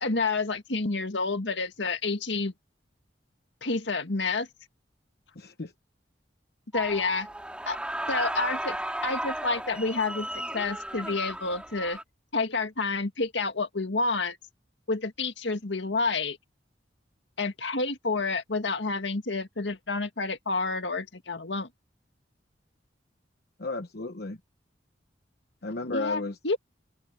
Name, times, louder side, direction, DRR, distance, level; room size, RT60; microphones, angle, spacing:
voice 1, 0.0-2.5 3.6-4.5 6.7-7.3 7.7-7.8 8.1-8.8 9.0-12.0 12.3-14.4 14.9-16.4 17.4-21.7 25.9-26.6, left 3 dB, 80° left, 1.9 m, -29 dB
voice 2, 5.3-5.7 23.6-24.4 25.6-26.4, left 3 dB, 60° left, 1.0 m, -33 dB
sound 1, 6.7-12.0, right 1 dB, 5° right, 3.0 m, -34 dB
open air
head